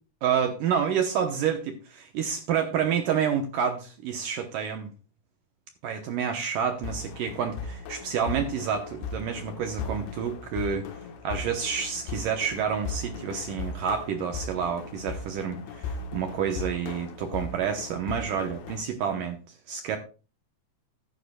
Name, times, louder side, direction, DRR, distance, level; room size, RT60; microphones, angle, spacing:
voice 1, 0.2-4.9 5.8-10.9 11.2-19.4 19.7-20.0, right 7 dB, 70° right, 5 dB, 2.2 m, -29 dB
sound 1, 6.8-18.8, left 4 dB, 85° left, 3.3 m, -38 dB
14.5 x 11.0 x 2.3 m, 0.34 s
omnidirectional pair, 4.7 m